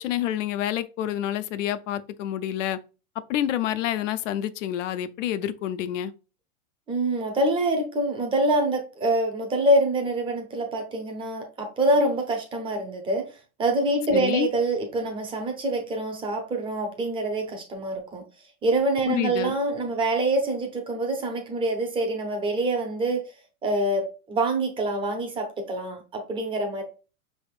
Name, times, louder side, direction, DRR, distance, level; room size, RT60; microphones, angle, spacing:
voice 1, 0.0-2.8 3.3-6.1 14.1-14.5 19.1-19.5, left 11 dB, 60° left, 0.5 m, -28 dB
voice 2, 6.9-13.3 13.6-18.2 18.6-23.2 23.6-26.8, right 1 dB, 10° right, 0.6 m, -25 dB
5.2 x 3.5 x 2.4 m
supercardioid pair, 150°, 44 cm